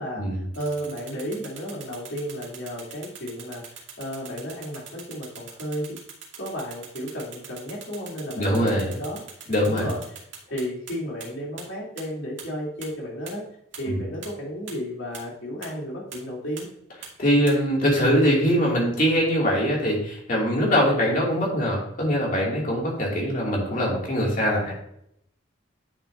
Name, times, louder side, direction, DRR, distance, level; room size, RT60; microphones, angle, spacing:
voice 1, 0.0-3.6 4.0-6.0 6.4-9.2 9.6-10.0 10.4-13.4 13.7-16.7, equal, 70° left, -4 dB, 3.4 m, -33 dB
sound 1, 0.5-10.9 11.2-11.3 11.6-11.7 12.0-12.1 12.4-12.5 12.8-12.9 13.3-13.4 13.7-13.8 14.2-14.3 14.7-14.8 15.1-15.2 15.6-15.7 16.1-16.2 16.6-16.7 17.0-17.1 17.5-17.6, right 8 dB, 65° right, 2.4 m, -41 dB
voice 2, 8.4-8.9 9.5-9.9 13.9-14.0 17.2-24.7, equal, 40° left, -2 dB, 2.7 m, -22 dB
10.5 x 6.7 x 2.8 m, 0.73 s
head